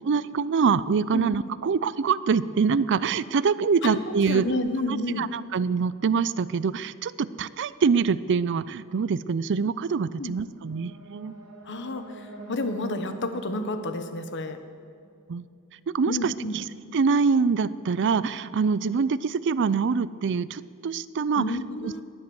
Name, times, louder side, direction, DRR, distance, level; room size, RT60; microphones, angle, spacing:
voice 1, 0.1-4.5 4.9-11.3 15.3-15.4 15.9-16.6 16.9-21.4 21.8-21.9, right 5 dB, 55° right, 16 dB, 0.4 m, -25 dB
voice 2, 4.3-5.3 10.2-10.3 11.7-14.6 16.1-16.6 21.4-22.0, left 2 dB, 55° left, 9 dB, 1.1 m, -30 dB
sound 1, 10.3-15.4, right 2 dB, 85° right, 3.0 m, -44 dB
20.5 x 8.0 x 7.0 m, 2.3 s
head